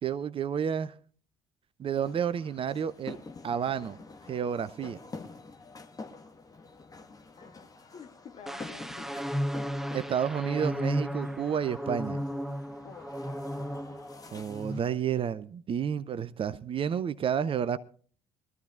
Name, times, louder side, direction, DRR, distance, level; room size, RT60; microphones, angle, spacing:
voice 1, 0.0-0.9 1.8-3.2 3.4-4.0 4.3-5.0 9.9-12.2 14.3-17.8, right 8 dB, 40° right, 0.7 m, -30 dB
sound 1, 1.9-15.0, left 3 dB, 25° left, 1.6 m, -48 dB
voice 2, 7.4-9.1 12.8-13.1, left 6 dB, 45° left, 1.9 m, -49 dB
sound 2, 8.5-14.2 14.5-14.8, equal, ahead, 0.7 m, -34 dB
22.5 x 13.5 x 2.5 m
figure-of-eight pair, 45°, 15 cm